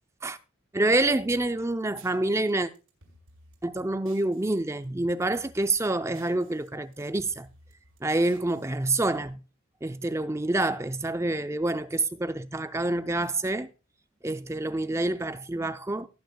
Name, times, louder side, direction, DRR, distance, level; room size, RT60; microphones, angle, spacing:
voice 1, 0.7-2.7 3.6-7.5 8.0-9.4 9.8-13.7 14.2-16.1, right 2 dB, 15° right, 0.4 m, -27 dB
sound 1, 0.9-4.6 4.8-6.7 6.9-9.3, right 2 dB, 85° right, 4.5 m, -57 dB
19.0 x 9.2 x 2.2 m
head